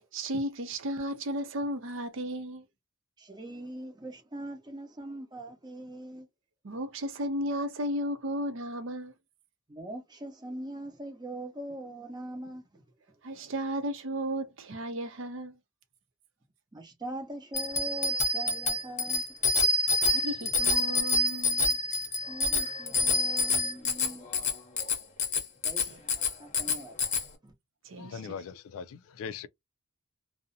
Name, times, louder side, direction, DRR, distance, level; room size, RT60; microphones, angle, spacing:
voice 1, 0.1-2.6 6.6-9.1 13.2-15.5 20.0-21.8 27.9-28.2, equal, 65° right, 0.6 m, -34 dB
voice 2, 3.2-6.3 9.7-12.8 16.7-19.2 22.3-24.4 25.6-26.0 26.4-27.2 27.4-27.5, right 1 dB, 20° right, 0.7 m, -42 dB
Bicycle bell, 17.5-27.2, left 2 dB, 35° left, 0.7 m, -27 dB
voice 3, 28.0-29.5, left 6 dB, 90° left, 0.3 m, -40 dB
2.6 x 2.0 x 2.6 m
head